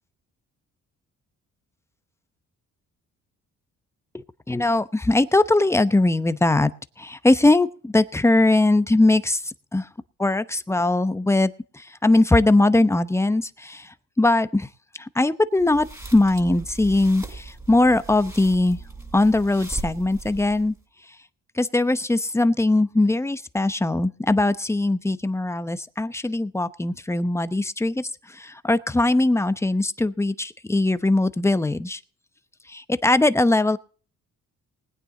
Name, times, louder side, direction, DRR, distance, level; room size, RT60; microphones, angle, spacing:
voice 1, 4.1-6.7 7.0-9.4 9.7-9.9 10.2-14.7 15.0-15.9 16.1-18.8 19.1-20.7 21.6-32.0 32.7-33.8, left 2 dB, 10° left, 13 dB, 0.9 m, -21 dB
sound 1, 15.6-20.8, right 3 dB, 10° right, 7.0 m, -38 dB
20.0 x 9.2 x 3.9 m, 0.41 s
cardioid pair, 90°, 30 cm